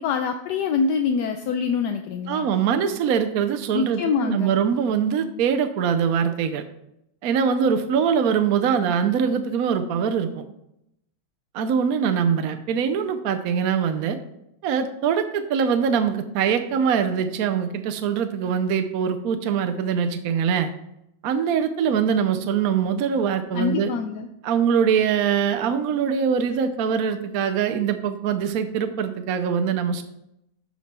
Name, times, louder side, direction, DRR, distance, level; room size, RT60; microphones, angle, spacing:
voice 1, 0.0-2.5 3.7-4.5 23.5-24.3, left 5 dB, 75° left, 6 dB, 1.1 m, -25 dB
voice 2, 2.3-6.6 7.2-10.4 11.5-14.2 14.6-20.7 21.2-23.9 24.4-30.0, right 7 dB, 65° right, 7 dB, 1.0 m, -23 dB
12.0 x 4.5 x 4.2 m, 0.81 s
omnidirectional pair, 1.9 m